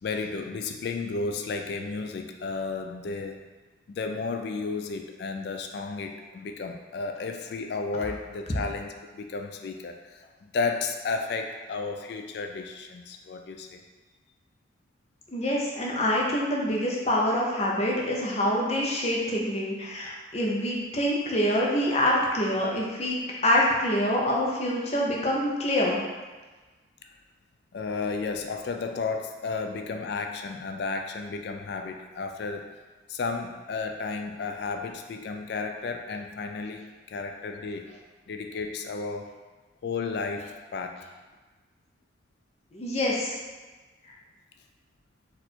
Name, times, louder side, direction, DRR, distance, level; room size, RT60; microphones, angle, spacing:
voice 1, 0.0-3.4 3.9-13.8 27.7-32.7 33.1-37.9 38.3-39.3 39.8-41.0, left 4 dB, 55° left, 4 dB, 0.3 m, -33 dB
voice 2, 15.3-26.0 42.7-43.3, left 1 dB, 35° left, -3 dB, 0.7 m, -26 dB
4.3 x 2.5 x 4.3 m, 1.3 s
head